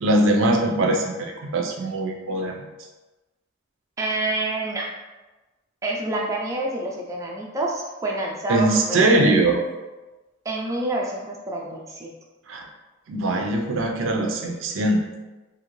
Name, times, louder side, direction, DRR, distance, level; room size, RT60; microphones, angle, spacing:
voice 1, 0.0-2.7 8.5-9.6 12.5-12.6 13.1-15.0, right 2 dB, 85° right, 2 dB, 0.5 m, -21 dB
voice 2, 4.0-4.9 5.8-9.3 10.5-12.1 13.3-13.4, right 2 dB, 15° right, -2 dB, 0.3 m, -28 dB
2.8 x 2.5 x 3.0 m, 1.1 s
head